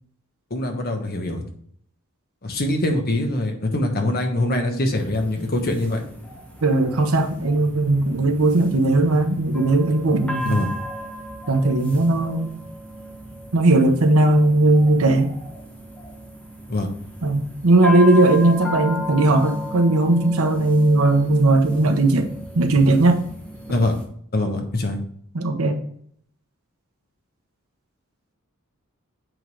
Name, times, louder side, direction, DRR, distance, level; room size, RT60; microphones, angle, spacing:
voice 1, 0.5-1.4 2.4-6.0 10.4-10.7 16.7-16.9 23.7-23.9 24.3-25.0, left 1 dB, 45° left, 1.2 m, -23 dB
sound 1, 4.9-24.0, left 1 dB, 5° left, 1.4 m, -35 dB
voice 2, 6.6-10.6 11.5-12.5 13.5-15.3 17.2-22.3 22.5-23.2 25.3-25.8, right 2 dB, 80° right, 1.0 m, -18 dB
7.9 x 3.9 x 4.7 m
head